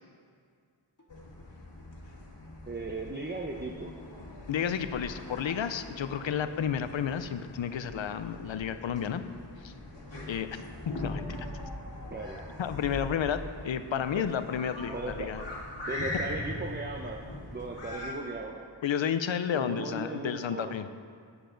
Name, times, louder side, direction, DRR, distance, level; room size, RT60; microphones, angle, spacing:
sound 1, 1.0-1.1 1.4-3.6 3.9-7.9 8.2-9.7 10.0-12.2 12.5-16.5 16.8-18.1, left 3 dB, 40° left, 1.7 m, -57 dB
sound 2, 1.1-18.1, left 1 dB, 70° left, 1.6 m, -41 dB
voice 1, 2.7-3.9 12.1-12.4 14.9-15.3 15.8-17.2 17.5-18.6 19.5-20.7, right 2 dB, 25° right, 1 dB, 0.7 m, -37 dB
voice 2, 4.5-9.2 9.6-9.7 10.3-10.6 11.0-11.5 12.6-15.4 18.8-20.9, left 8 dB, 85° left, 11 dB, 0.6 m, -31 dB
11.5 x 8.9 x 3.9 m, 2.2 s
wide cardioid pair, 45°, 45 cm